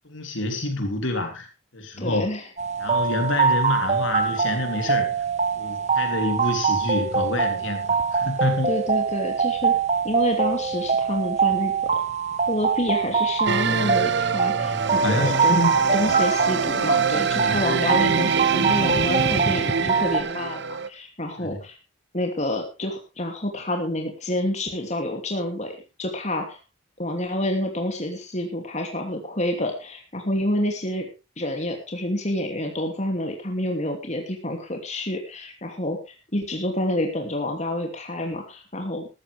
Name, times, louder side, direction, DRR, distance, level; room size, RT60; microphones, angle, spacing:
voice 1, 0.0-1.5 1.7-2.3 2.8-5.2 5.6-8.7 14.5-15.7 16.0-16.1 17.3-17.6 21.4-21.5, left 2 dB, 70° left, 5 dB, 3.3 m, -27 dB
voice 2, 2.0-2.5 8.7-9.8 10.0-11.7 12.5-15.6 15.9-21.8 22.1-25.7 26.0-26.6 27.0-31.1 31.4-39.1, left 1 dB, 35° left, 3 dB, 2.8 m, -28 dB
sound 1, 2.6-20.2, right 5 dB, 35° right, 1.2 m, -24 dB
sound 2, 13.5-20.9, right 5 dB, 60° right, 0.9 m, -25 dB
14.0 x 14.0 x 3.5 m, 0.28 s
head